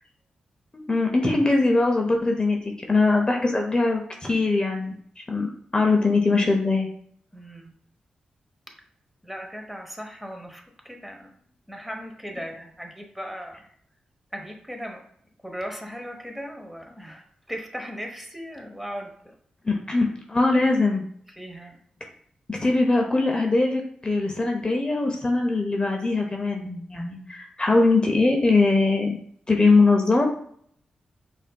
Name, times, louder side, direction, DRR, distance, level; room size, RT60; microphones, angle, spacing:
voice 1, 0.7-6.9 19.6-21.0 22.5-29.2 29.5-30.2, left 3 dB, 30° left, 1 dB, 0.6 m, -22 dB
voice 2, 7.3-7.7 9.2-11.3 11.7-13.7 14.3-15.0 15.4-19.3 21.4-21.8, equal, 5° right, 2 dB, 0.9 m, -37 dB
5.0 x 2.6 x 2.2 m, 0.63 s
supercardioid pair, 40°, 3 cm